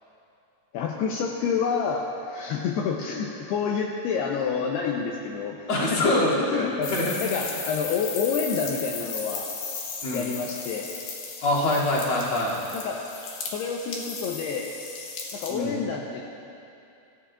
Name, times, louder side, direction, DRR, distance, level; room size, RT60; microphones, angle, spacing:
voice 1, 0.7-6.1 6.4-9.5 10.1-10.9 12.7-13.0 13.5-14.7 15.3-16.2, left 6 dB, 80° left, -1 dB, 2.4 m, -28 dB
voice 2, 5.7-6.6 6.9-7.4 10.0-10.2 11.4-12.6 15.5-15.8, left 1 dB, 35° left, -7 dB, 2.7 m, -24 dB
sound 1, 6.8-15.5, left 5 dB, 60° left, 2.8 m, -36 dB
26.0 x 15.0 x 2.5 m, 2.7 s
omnidirectional pair, 5.5 m